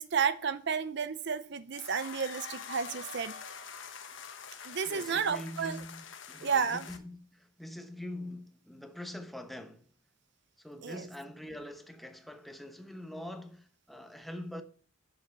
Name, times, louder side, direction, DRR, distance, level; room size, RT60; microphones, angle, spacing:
voice 1, 0.0-3.4 4.6-5.8 6.4-6.9 10.8-11.0, right 6 dB, 60° right, 0.6 m, -32 dB
sound 1, 1.7-7.0, left 6 dB, 65° left, 1.2 m, -45 dB
voice 2, 4.9-9.9 10.6-14.6, left 1 dB, ahead, 0.9 m, -44 dB
7.6 x 6.7 x 7.0 m
head